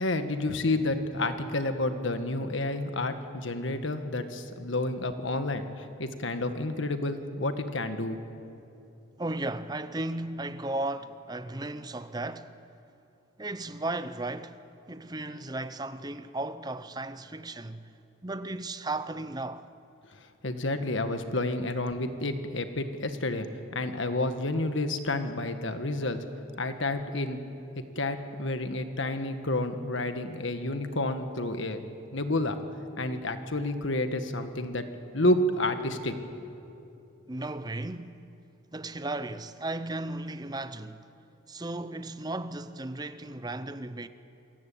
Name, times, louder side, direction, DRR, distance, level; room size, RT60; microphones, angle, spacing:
voice 1, 0.0-8.2 20.4-26.2 26.6-27.4 27.9-31.9 32.1-32.6 33.0-34.8 35.1-36.1, left 2 dB, 65° left, 1.6 m, -30 dB
voice 2, 9.2-12.6 13.4-14.6 14.9-17.8 18.2-19.7 37.3-38.2 38.7-41.1 41.5-44.1, right 2 dB, 20° right, 0.7 m, -35 dB
27.5 x 17.0 x 8.6 m
head